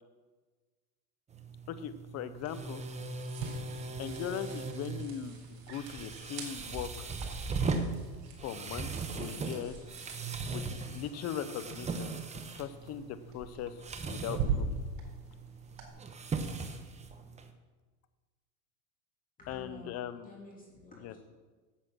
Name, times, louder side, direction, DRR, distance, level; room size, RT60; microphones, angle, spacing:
sound 1, 1.3-17.5, right 4 dB, 15° right, 0.9 m, -39 dB
voice 1, 1.7-2.8 4.0-7.1 8.4-9.8 10.5-12.1 12.5-14.7 19.5-20.3 21.0-21.1, left 9 dB, 35° left, 12 dB, 0.7 m, -40 dB
sound 2, 2.3-15.9, right 5 dB, 60° right, 4.2 m, -43 dB
voice 2, 19.4-21.2, left 1 dB, 15° left, -4 dB, 2.9 m, -51 dB
10.0 x 8.3 x 6.1 m, 1.3 s
supercardioid pair, 115°, 47 cm